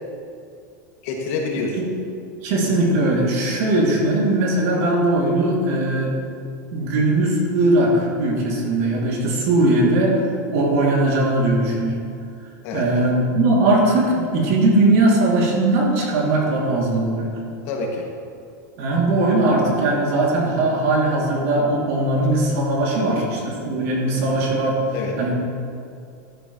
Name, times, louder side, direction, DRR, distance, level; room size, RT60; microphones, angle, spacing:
voice 1, 1.0-1.8 9.6-9.7 12.6-13.1 17.7-18.1 23.0-23.2 24.1-24.4 24.9-25.2, left 3 dB, 50° left, -1 dB, 2.2 m, -28 dB
voice 2, 2.4-6.1 6.7-10.2 10.5-12.0 12.7-17.3 18.8-24.7 25.2-25.3, right 2 dB, 50° right, -3 dB, 2.8 m, -19 dB
13.5 x 12.0 x 3.2 m, 2.4 s
supercardioid pair, 170°, 10 cm